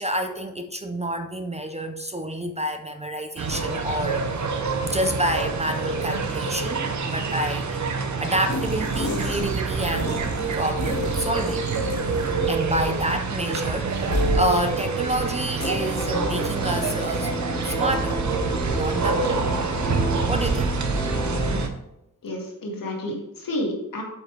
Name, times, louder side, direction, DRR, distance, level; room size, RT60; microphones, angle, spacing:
voice 1, 0.0-4.3 4.8-7.8 8.2-11.6 12.5-17.3 17.6-18.3 18.7-19.4 20.3-20.8, equal, 20° right, 7 dB, 0.4 m, -28 dB
sound 1, 3.4-21.7, right 4 dB, 55° right, 0.8 m, -26 dB
sound 2, 8.5-9.6 9.9-12.7 12.9-13.0 14.1-14.5 15.6-15.7, left 2 dB, 55° left, 2.1 m, -30 dB
sound 3, 15.6-21.7, equal, 15° left, 0.7 m, -30 dB
voice 2, 22.2-24.0, left 1 dB, 75° left, 0 dB, 1.9 m, -30 dB
7.9 x 5.6 x 3.3 m, 0.87 s
wide cardioid pair, 165°, 34 cm